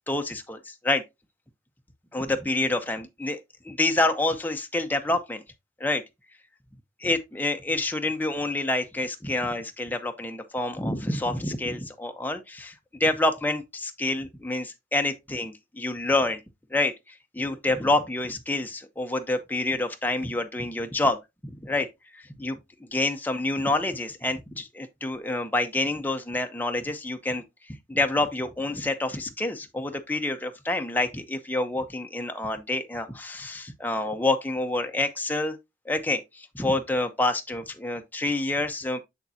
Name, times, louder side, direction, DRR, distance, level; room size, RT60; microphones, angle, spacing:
voice 1, 0.1-1.0 2.1-3.4 3.6-5.4 5.8-6.0 7.0-16.4 16.7-16.9 17.3-21.2 21.4-21.9 22.1-22.6 22.9-27.4 27.7-35.6 35.9-39.0, left 2 dB, 10° left, 0.7 m, -27 dB
7.2 x 6.6 x 2.7 m
head